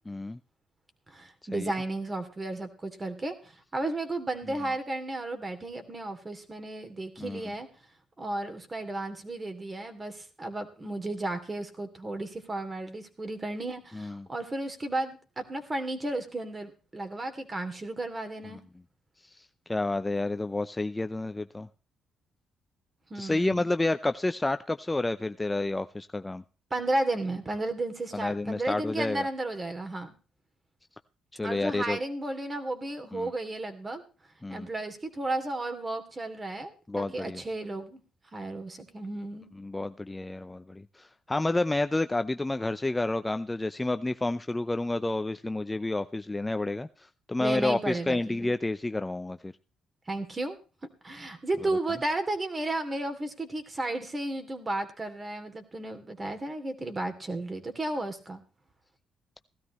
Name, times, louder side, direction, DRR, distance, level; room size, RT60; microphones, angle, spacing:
voice 1, 0.1-0.4 1.5-1.7 7.2-7.4 13.9-14.3 19.2-21.7 23.2-26.4 28.1-29.3 31.3-32.0 33.1-33.3 34.4-34.7 36.9-37.4 39.6-49.5, left 2 dB, 15° left, 10 dB, 0.6 m, -30 dB
voice 2, 1.1-7.7 8.2-18.6 23.1-23.7 26.7-30.1 31.4-34.0 34.5-38.0 38.3-39.5 47.4-48.5 50.1-50.6 51.0-58.4, right 2 dB, 30° right, 8 dB, 2.8 m, -33 dB
16.5 x 13.0 x 3.1 m, 0.35 s
supercardioid pair, 70°, 0 cm